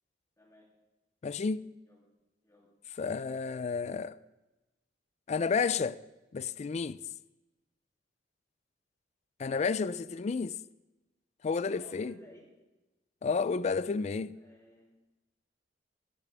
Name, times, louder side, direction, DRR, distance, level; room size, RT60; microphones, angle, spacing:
voice 1, 0.4-0.7 1.9-2.1 2.4-2.8 9.9-10.3 11.6-12.5 14.3-15.0, equal, 20° left, 2.8 m, -56 dB
voice 2, 1.2-1.7 3.0-4.2 5.3-6.0 6.3-7.0 9.4-10.5 11.4-12.1 13.2-14.4, left 5 dB, 40° left, 0.3 m, -31 dB
21.0 x 8.5 x 3.4 m
head